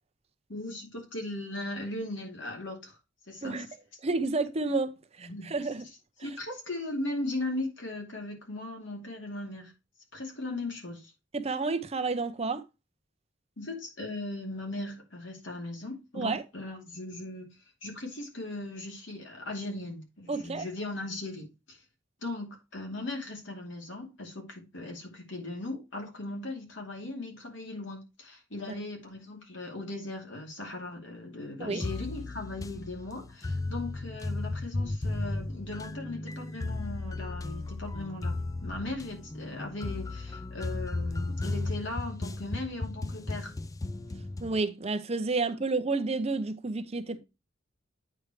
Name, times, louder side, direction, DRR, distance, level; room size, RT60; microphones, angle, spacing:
voice 1, 0.5-3.0 3.3-3.7 5.2-5.5 6.2-9.7 10.1-11.1 13.6-17.5 17.8-21.8 22.2-43.5 47.1-47.2, left 2 dB, 70° left, 2.6 m, -38 dB
voice 2, 4.0-5.8 6.2-6.3 11.3-12.6 16.1-16.4 20.3-20.6 31.6-31.8 44.4-47.2, right 3 dB, 35° right, 0.7 m, -30 dB
sound 1, 31.8-44.6, left 2 dB, 20° left, 0.3 m, -35 dB
8.9 x 4.6 x 3.2 m
head